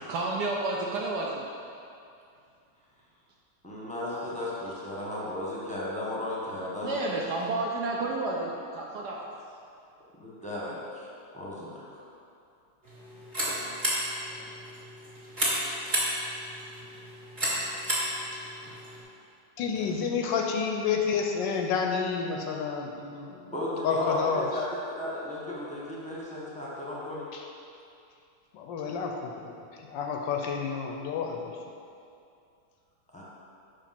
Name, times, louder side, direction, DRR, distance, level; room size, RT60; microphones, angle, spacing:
voice 1, 0.1-1.5 6.8-9.2, right 2 dB, 70° right, -2 dB, 1.0 m, -30 dB
voice 2, 3.6-7.3 10.2-12.0 18.6-18.8 23.5-27.3 33.1-33.2, left 1 dB, 5° left, -7 dB, 1.0 m, -35 dB
sound 1, 12.8-19.0, right 1 dB, 25° right, 1.9 m, -32 dB
voice 3, 19.6-23.5 23.8-24.5 27.3-27.4 28.5-31.6, left 6 dB, 75° left, 2 dB, 1.2 m, -30 dB
5.4 x 5.0 x 5.8 m, 2.5 s
omnidirectional pair, 2.2 m